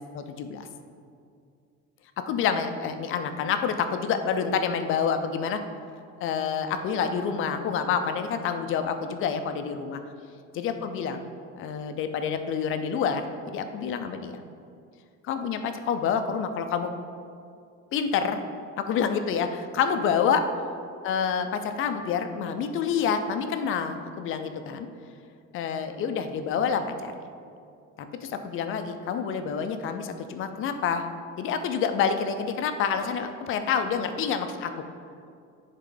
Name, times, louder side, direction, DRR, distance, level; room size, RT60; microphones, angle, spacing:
voice 1, 0.1-0.7 2.3-5.6 6.2-10.0 10.5-11.2 11.6-14.4 15.2-16.9 17.9-18.4 18.8-20.4 21.0-24.9 25.5-27.1 28.2-31.0 31.4-34.7, left 6 dB, 45° left, 8 dB, 0.5 m, -28 dB
10.0 x 3.7 x 3.8 m, 2.4 s
cardioid pair, 165°, 29 cm